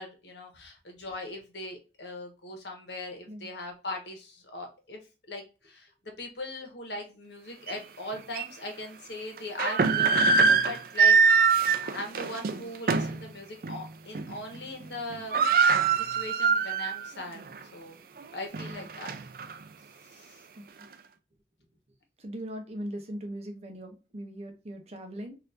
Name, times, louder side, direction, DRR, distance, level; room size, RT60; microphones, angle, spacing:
voice 1, 0.0-5.9 6.2-15.4 15.9-18.0 18.3-19.1 20.0-20.4, left 1 dB, 80° left, 3 dB, 1.2 m, -40 dB
sound 1, 7.7-7.8 8.3-8.5 9.4-13.2 13.6-13.8 14.1-14.6 14.8-14.9 15.1-17.1 17.5-17.6 18.2-19.5, right 5 dB, 55° right, 0.4 m, -23 dB
voice 2, 20.5-20.9 22.2-25.4, right 1 dB, 35° right, 4 dB, 0.8 m, -40 dB
4.1 x 2.7 x 2.5 m, 0.31 s
head